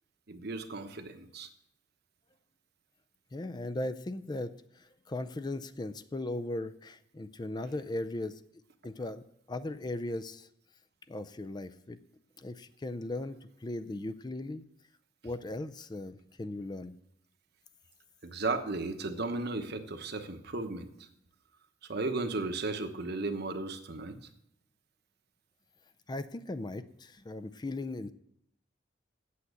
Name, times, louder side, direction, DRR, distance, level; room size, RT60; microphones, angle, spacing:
voice 1, 0.3-1.5 18.2-21.1 21.9-24.3, right 3 dB, 55° right, 7 dB, 1.1 m, -35 dB
voice 2, 3.3-8.4 8.8-9.2 9.5-10.5 11.1-12.0 12.4-14.6 15.2-16.9 26.1-28.1, left 2 dB, 20° left, 12 dB, 0.4 m, -38 dB
8.5 x 7.8 x 8.1 m, 0.75 s
head